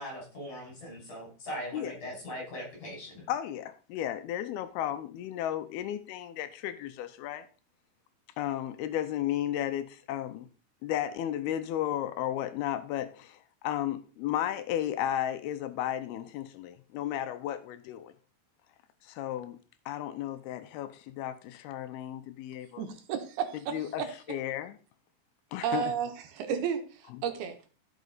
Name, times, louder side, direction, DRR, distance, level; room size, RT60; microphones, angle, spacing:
voice 1, 0.0-3.2, equal, 55° left, -2 dB, 7.1 m, -40 dB
voice 2, 3.3-7.5 8.4-10.5 10.8-18.1 19.0-19.6 19.9-22.8 23.7-24.0 24.3-24.7 25.5-25.9, left 11 dB, 85° left, 10 dB, 2.7 m, -34 dB
voice 3, 22.8-24.1 25.6-27.6, right 8 dB, 80° right, 6 dB, 3.1 m, -33 dB
14.5 x 6.0 x 4.0 m, 0.36 s
omnidirectional pair, 4.5 m